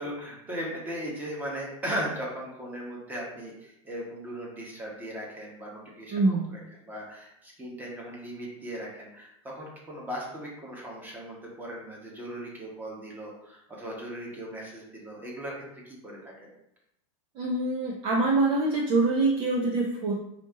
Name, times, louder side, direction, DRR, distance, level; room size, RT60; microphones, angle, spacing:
voice 1, 0.0-16.3, equal, 10° right, -3 dB, 1.2 m, -38 dB
voice 2, 6.1-6.4 17.4-20.1, right 3 dB, 30° right, -1 dB, 0.6 m, -25 dB
5.1 x 2.8 x 3.6 m, 0.78 s
supercardioid pair, 155°, 19 cm